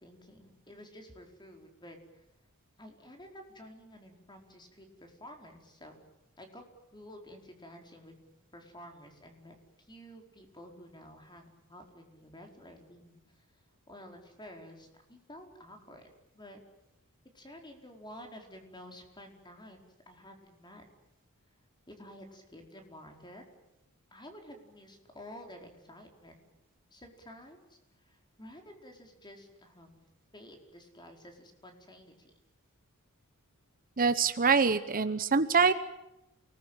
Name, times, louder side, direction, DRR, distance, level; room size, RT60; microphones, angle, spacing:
voice 1, 0.0-2.2 2.8-5.9 6.4-6.6 6.9-8.2 8.5-13.1 13.9-16.0 16.3-16.6 17.3-20.9 21.9-23.4 24.1-26.4 26.9-27.8 28.0-30.0 30.3-32.3, equal, 20° left, 3 dB, 4.8 m, -51 dB
voice 2, 34.0-35.7, right 5 dB, 40° right, 11 dB, 1.0 m, -25 dB
29.0 x 20.5 x 9.1 m, 0.91 s
head